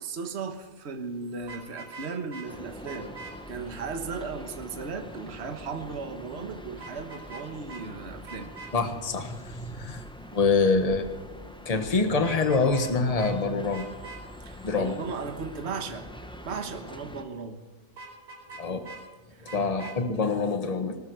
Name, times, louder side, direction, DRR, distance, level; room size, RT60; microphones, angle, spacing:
voice 1, 0.0-3.1 3.5-8.5 14.4-17.6 19.3-19.5, right 5 dB, 50° right, 6 dB, 1.5 m, -36 dB
Vehicle horn car horn honking, 1.4-2.5 2.9-3.3 6.8-7.4 7.7-7.8 8.3-8.7 12.1-12.9 13.2-13.4 13.7-14.2 18.0-19.0 19.5-20.0, right 4 dB, 75° right, 5.5 m, -43 dB
sound 1, 2.5-17.2, equal, 5° left, 0.9 m, -44 dB
voice 2, 8.7-10.0 10.3-11.1 11.6-13.9 14.6-15.0 18.6-18.8 19.4-21.0, left 4 dB, 30° left, 7 dB, 1.4 m, -25 dB
19.5 x 13.0 x 4.8 m, 1.2 s
omnidirectional pair, 1.4 m